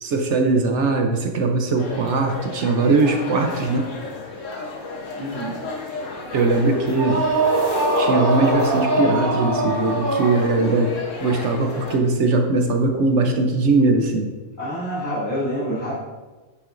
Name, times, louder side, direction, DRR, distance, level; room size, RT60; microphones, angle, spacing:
voice 1, 0.0-3.9 6.3-7.2 8.0-10.9 11.2-14.3, right 3 dB, 65° right, 5 dB, 1.0 m, -20 dB
sound 1, 1.8-12.0, left 3 dB, 70° left, 1.4 m, -33 dB
voice 2, 5.2-5.6 14.6-15.9, equal, 35° left, -14 dB, 2.6 m, -27 dB
sound 2, 6.9-10.9, right 1 dB, 40° right, 1.5 m, -22 dB
9.6 x 6.0 x 2.6 m, 1.2 s
omnidirectional pair, 1.4 m